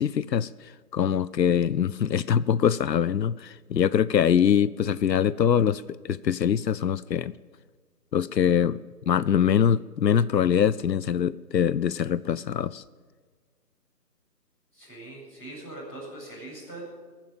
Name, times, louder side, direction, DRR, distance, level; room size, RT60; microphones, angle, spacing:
voice 1, 0.0-7.4 8.1-8.8 9.1-12.8, left 8 dB, 85° left, 18 dB, 0.6 m, -23 dB
voice 2, 14.7-16.8, right 1 dB, ahead, -18 dB, 3.1 m, -41 dB
20.0 x 7.5 x 8.6 m, 1.5 s
figure-of-eight pair, 180°, 49 cm